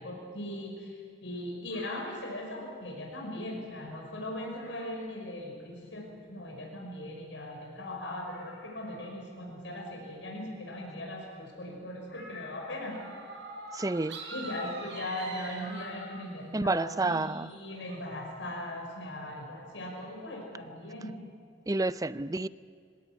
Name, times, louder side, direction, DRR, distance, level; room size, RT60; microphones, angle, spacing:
voice 1, 0.0-13.0 14.3-21.1, left 1 dB, 85° left, -1 dB, 5.9 m, -39 dB
sound 1, 1.7-2.7 3.2-3.3 3.8-3.9 4.5-5.1 6.9-7.0 7.2-7.3 7.7-7.8 8.2-9.3 12.1-13.0 15.6-16.6 17.9-18.0, left 3 dB, 70° left, 6.0 m, -51 dB
sound 2, 12.9-16.3 16.8-18.6, right 3 dB, 75° right, 4.5 m, -45 dB
voice 2, 13.7-14.2 16.5-17.5 21.7-22.5, right 2 dB, 20° right, 16 dB, 0.5 m, -29 dB
24.5 x 17.5 x 9.5 m, 2.2 s
head